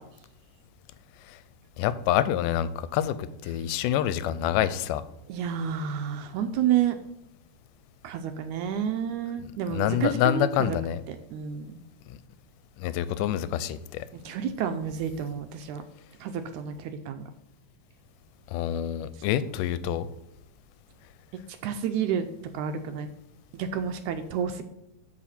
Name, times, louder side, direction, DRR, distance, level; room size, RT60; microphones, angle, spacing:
voice 1, 1.8-5.0 9.7-11.0 12.8-14.1 18.5-20.1, left 11 dB, 85° left, 14 dB, 2.1 m, -27 dB
voice 2, 5.3-7.0 8.0-10.8 11.1-11.8 14.1-15.8 16.2-17.2 21.6-22.2 22.5-23.1 23.5-24.6, right 8 dB, 80° right, 8 dB, 1.9 m, -30 dB
13.0 x 4.8 x 4.3 m, 0.84 s
omnidirectional pair, 3.8 m